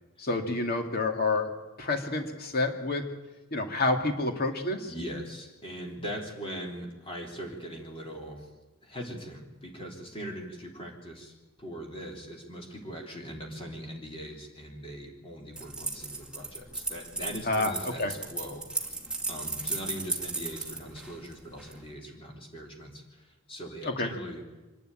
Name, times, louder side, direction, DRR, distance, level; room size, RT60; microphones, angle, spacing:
voice 1, 0.2-1.5 1.8-3.1 3.5-4.9 17.5-18.1 23.9-24.1, left 2 dB, 45° left, 4 dB, 2.4 m, -28 dB
voice 2, 4.9-8.5 8.8-11.3 11.6-18.9 19.3-24.4, equal, 25° left, -1 dB, 3.5 m, -41 dB
sound 1, 15.5-21.8, right 3 dB, 5° right, 2.3 m, -35 dB
25.0 x 12.0 x 9.1 m, 1.2 s
head